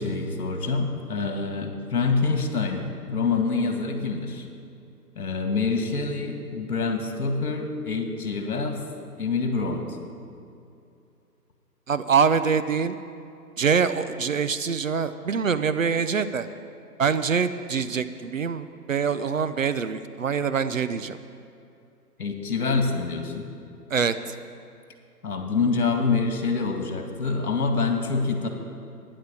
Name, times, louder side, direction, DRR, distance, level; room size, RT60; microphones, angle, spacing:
voice 1, 0.0-4.5 5.2-8.8 9.2-9.8 22.2-23.5 25.2-28.5, left 4 dB, 65° left, 4 dB, 2.2 m, -26 dB
voice 2, 11.9-13.0 13.6-16.5 17.0-21.2 23.9-24.2, right 6 dB, 55° right, 12 dB, 0.6 m, -24 dB
11.5 x 10.0 x 7.0 m, 2.6 s
hypercardioid pair, 165°, 48 cm